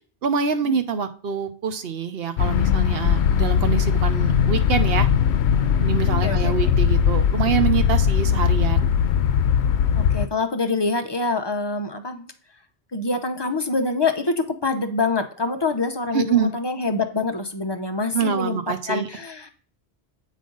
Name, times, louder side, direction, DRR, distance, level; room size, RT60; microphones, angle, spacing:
voice 1, 0.2-5.1 5.8-8.9 16.1-16.5 18.1-19.1, right 7 dB, 65° right, 8 dB, 1.0 m, -25 dB
sound 1, 2.4-10.3, left 8 dB, 75° left, 0.8 m, -20 dB
voice 2, 6.2-6.7 10.0-12.3 12.9-18.6 18.9-19.5, left 3 dB, 30° left, 6 dB, 0.6 m, -25 dB
8.3 x 5.1 x 3.9 m, 0.41 s
omnidirectional pair, 1.1 m